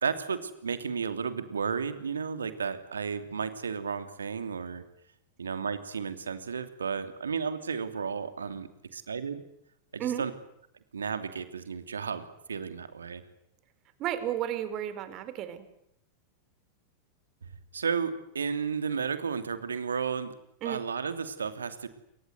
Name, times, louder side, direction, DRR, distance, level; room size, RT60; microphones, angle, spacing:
voice 1, 0.0-4.8 5.4-9.4 9.9-10.3 10.9-13.2 17.7-20.3 20.6-21.9, right 6 dB, 70° right, 10 dB, 2.8 m, -33 dB
voice 2, 14.0-15.7 20.6-20.8, right 11 dB, 35° right, 12 dB, 4.2 m, -33 dB
28.5 x 24.5 x 8.2 m, 0.77 s
figure-of-eight pair, 90°, 0 cm